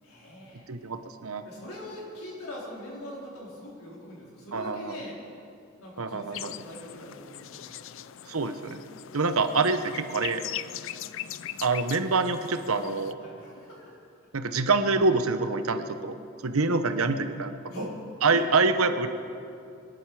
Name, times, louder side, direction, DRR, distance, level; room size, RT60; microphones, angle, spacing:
voice 1, 0.0-0.7 1.4-5.2 5.8-8.1 13.2-14.0 17.7-17.9 18.3-18.5, left 1 dB, 75° left, -4 dB, 4.3 m, -42 dB
voice 2, 0.7-1.5 4.5-5.0 6.0-6.5 8.3-8.8 9.1-10.4 11.6-13.2 14.3-16.1 16.4-17.9 18.2-19.1, right 3 dB, 75° right, 9 dB, 1.0 m, -26 dB
sound 1, 6.3-13.1, left 12 dB, 60° left, 0.4 m, -40 dB
25.5 x 11.0 x 4.9 m, 2.5 s
head